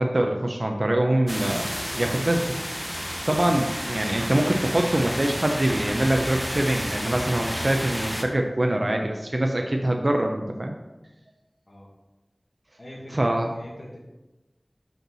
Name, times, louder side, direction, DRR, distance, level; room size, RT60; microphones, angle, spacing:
voice 1, 0.0-1.6 2.0-2.4 3.3-10.7 13.1-13.5, right 1 dB, 60° right, 2 dB, 0.6 m, -24 dB
sound 1, 1.3-8.2, equal, 5° left, 0.9 m, -31 dB
voice 2, 12.8-14.0, equal, 65° left, -2 dB, 1.7 m, -42 dB
5.4 x 4.5 x 6.2 m, 1.0 s
wide cardioid pair, 40°, 0 cm